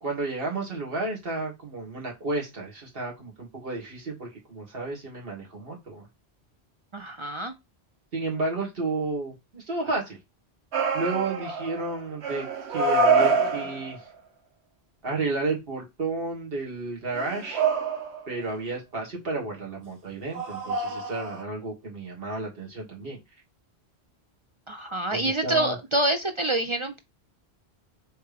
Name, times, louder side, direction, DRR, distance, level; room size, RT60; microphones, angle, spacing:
voice 1, 0.0-6.1 8.1-10.2 10.9-14.0 15.0-17.6 18.3-23.2 25.1-25.8, right 3 dB, 60° right, -1 dB, 1.8 m, -32 dB
voice 2, 6.9-7.5 24.7-27.0, right 1 dB, 45° right, 7 dB, 0.4 m, -27 dB
sound 1, 10.7-11.9 12.2-14.0 17.1-18.3 20.3-21.4, right 4 dB, 85° right, 1.2 m, -26 dB
3.3 x 3.3 x 4.8 m, 0.22 s
omnidirectional pair, 1.1 m